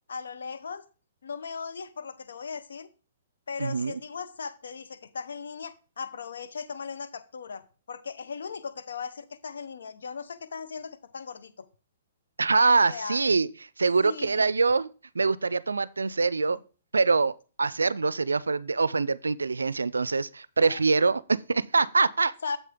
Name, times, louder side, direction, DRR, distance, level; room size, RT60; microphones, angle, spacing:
voice 1, 0.1-0.8 1.2-2.9 3.5-7.6 7.9-11.6 12.7-13.2 14.0-14.5 16.5-16.6 20.6-20.8 21.8-21.9 22.4-22.6, left 5 dB, 75° left, 0.8 m, -37 dB
voice 2, 3.6-4.0 12.4-13.5 13.8-14.9 15.2-16.6 16.9-22.3, right 4 dB, 90° right, 0.4 m, -24 dB
7.3 x 6.5 x 3.7 m
hypercardioid pair, 125°, 0 cm